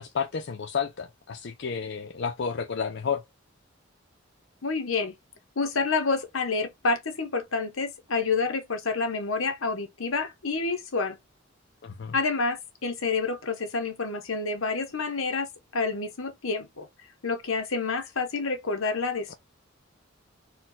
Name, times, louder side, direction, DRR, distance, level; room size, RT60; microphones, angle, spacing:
voice 1, 0.0-3.2 11.8-12.2, left 6 dB, 60° left, 0.5 m, -31 dB
voice 2, 4.6-5.1 5.6-11.2 12.1-15.5 15.7-16.9 17.2-19.3, left 4 dB, 80° left, 1.0 m, -28 dB
4.4 x 2.4 x 3.9 m
head